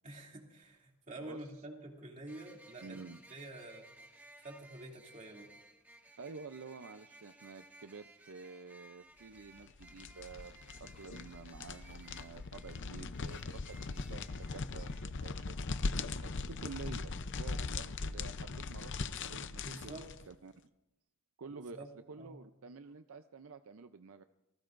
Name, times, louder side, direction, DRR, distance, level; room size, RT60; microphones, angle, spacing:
voice 1, 0.0-3.0 3.3-3.9 4.4-5.5 19.6-20.1 21.5-21.9 22.2-22.4, right 1 dB, 35° right, 0 dB, 2.7 m, -48 dB
sound 1, 2.3-15.1, right 2 dB, 10° right, 1.7 m, -59 dB
voice 2, 2.8-3.2 6.2-15.7 16.2-20.6 21.4-24.2, right 4 dB, 70° right, 9 dB, 0.5 m, -50 dB
sound 2, 9.6-20.3, left 3 dB, 55° left, 0.6 m, -40 dB
27.5 x 19.0 x 2.6 m, 0.93 s
head